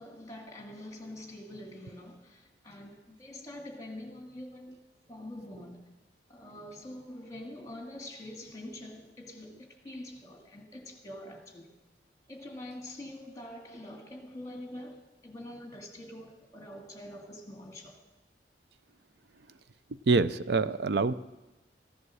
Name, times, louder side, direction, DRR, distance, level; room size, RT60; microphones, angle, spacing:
voice 1, 0.0-4.8 5.1-5.8 6.3-11.8 12.3-18.0, left 1 dB, 20° left, 2.1 m, -45 dB
voice 2, 20.1-21.1, right 4 dB, 60° right, 0.5 m, -25 dB
15.0 x 11.0 x 6.4 m
head